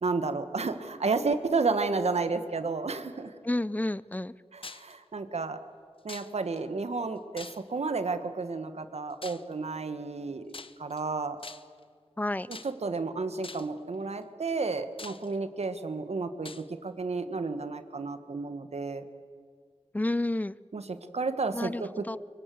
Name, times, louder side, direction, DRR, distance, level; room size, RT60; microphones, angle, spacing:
voice 1, 0.0-3.3 4.5-5.6 6.0-10.5 10.8-11.4 12.5-19.0 20.7-22.2, right 4 dB, 70° right, 10 dB, 1.5 m, -32 dB
voice 2, 3.4-4.3 12.2-12.5 19.9-20.6 21.5-22.2, left 1 dB, 15° left, 19 dB, 0.6 m, -30 dB
sound 1, 4.6-4.9 6.1-6.6 7.4-7.9 9.2-9.5 10.5-11.0 11.4-11.8 12.5-13.0 13.4-13.8 14.5-14.6 15.0-15.7 16.4-16.7, left 4 dB, 55° left, 0.9 m, -44 dB
24.5 x 23.5 x 7.8 m, 2.1 s
cardioid pair, 50°, 11 cm